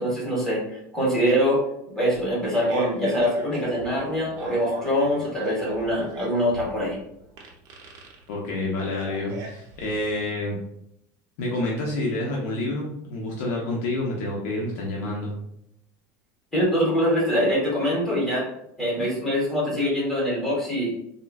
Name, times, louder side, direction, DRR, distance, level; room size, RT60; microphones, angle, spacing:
voice 1, 0.0-1.6 1.9-7.0 16.5-18.4 18.8-20.9, equal, 5° left, -6 dB, 1.0 m, -24 dB
Fart, 2.3-10.1, right 2 dB, 45° right, 0.6 m, -39 dB
voice 2, 8.3-10.6 11.4-15.3, left 2 dB, 80° left, -3 dB, 0.7 m, -28 dB
3.7 x 2.1 x 2.2 m, 0.76 s
cardioid pair, 165°, 9 cm